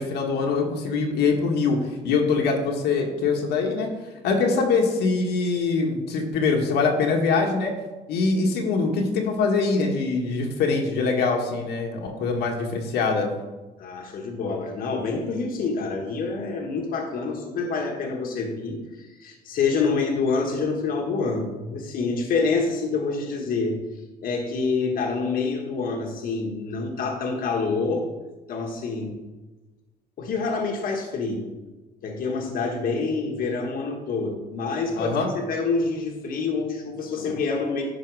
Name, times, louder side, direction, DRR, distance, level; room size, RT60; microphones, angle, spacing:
voice 1, 0.0-1.8 2.0-3.9 4.2-7.7 8.1-13.3 35.0-35.3, left 4 dB, 75° left, 1 dB, 1.6 m, -23 dB
voice 2, 13.8-23.8 24.2-28.1 28.5-29.2 30.2-31.5 32.0-37.8, left 4 dB, 60° left, 1 dB, 1.5 m, -27 dB
10.5 x 5.0 x 4.8 m, 1.2 s
cardioid pair, 110°, 17 cm